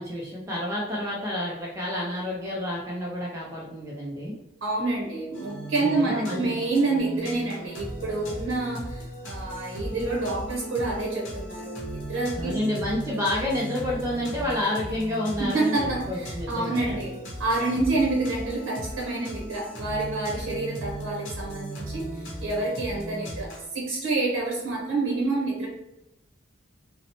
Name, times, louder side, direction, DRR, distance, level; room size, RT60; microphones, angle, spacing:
voice 1, 0.0-4.3 5.8-6.5 12.4-17.0, left 1 dB, 15° right, -5 dB, 0.4 m, -29 dB
voice 2, 4.6-12.6 15.4-25.7, right 2 dB, 80° right, -3 dB, 0.7 m, -28 dB
sound 1, 5.3-23.7, right 1 dB, 75° left, 0.7 m, -37 dB
2.7 x 2.0 x 2.8 m, 0.90 s
head